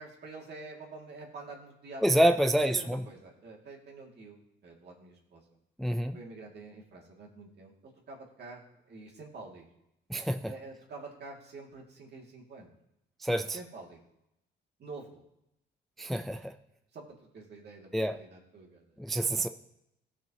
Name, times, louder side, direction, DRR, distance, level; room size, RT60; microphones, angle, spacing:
voice 1, 0.0-5.4 6.1-9.7 10.5-12.7 13.5-14.0 14.8-15.2 16.4-16.5 16.9-19.3, right 3 dB, 55° right, -1 dB, 2.3 m, -48 dB
voice 2, 2.0-3.0 5.8-6.2 10.1-10.4 13.2-13.5 16.0-16.5 17.9-18.1 19.0-19.5, right 1 dB, ahead, 7 dB, 0.4 m, -27 dB
15.5 x 6.1 x 2.9 m, 0.84 s
cardioid pair, 90°, 20 cm